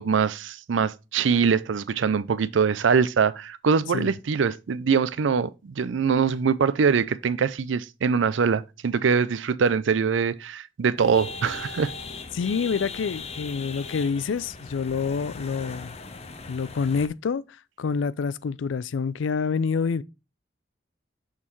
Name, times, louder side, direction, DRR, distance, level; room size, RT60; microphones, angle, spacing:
voice 1, 0.0-11.9, right 6 dB, 85° right, 0.5 m, -23 dB
sound 1, 11.0-17.1, left 4 dB, 35° left, 0.7 m, -39 dB
voice 2, 12.3-15.9 16.5-17.4 17.8-20.0, left 5 dB, 90° left, 0.4 m, -27 dB
6.4 x 5.6 x 3.1 m
head